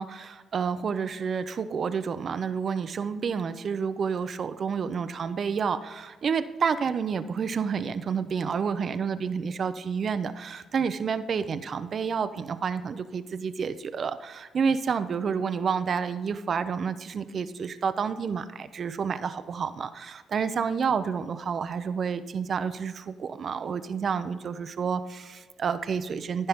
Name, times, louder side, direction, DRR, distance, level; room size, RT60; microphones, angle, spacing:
voice 1, 0.0-26.5, right 6 dB, 50° right, 11 dB, 0.5 m, -29 dB
14.5 x 5.4 x 3.6 m, 1.3 s
cardioid pair, 90°, 0 cm